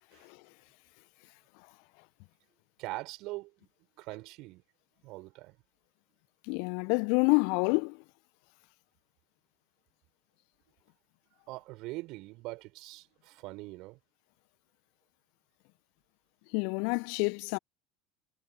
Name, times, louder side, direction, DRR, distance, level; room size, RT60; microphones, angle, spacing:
voice 1, 2.8-3.7 4.0-4.6 5.0-5.5 11.5-14.0, right 21 dB, 55° right, 5.0 m, -42 dB
voice 2, 6.5-8.0 16.5-17.6, left 38 dB, 60° left, 1.5 m, -28 dB
figure-of-eight pair, 65°, 0 cm